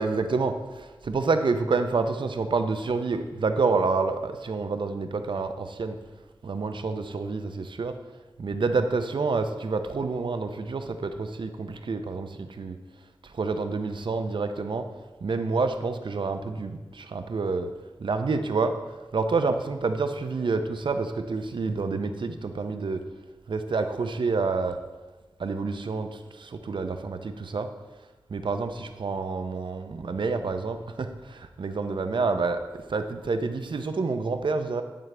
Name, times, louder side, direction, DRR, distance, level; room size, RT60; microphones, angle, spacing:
voice 1, 0.0-6.0 6.4-8.0 8.4-12.8 13.2-14.9 15.2-17.7 18.0-18.8 19.1-23.0 23.5-24.8 25.4-27.7 28.3-34.8, right 4 dB, 65° right, 8 dB, 0.6 m, -28 dB
9.0 x 8.1 x 3.3 m, 1.2 s
wide cardioid pair, 80°, 9 cm